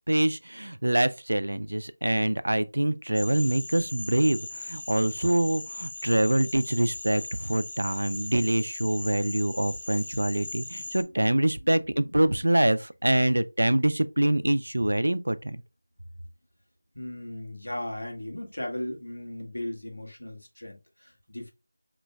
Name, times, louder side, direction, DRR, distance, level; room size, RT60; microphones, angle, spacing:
voice 1, 0.1-15.6, right 1 dB, 85° right, 0.5 m, -25 dB
sound 1, 3.1-11.0, left 2 dB, 45° left, 0.7 m, -39 dB
voice 2, 16.9-21.5, left 1 dB, 85° left, 1.7 m, -37 dB
5.1 x 3.0 x 2.2 m
figure-of-eight pair, 170°, 0 cm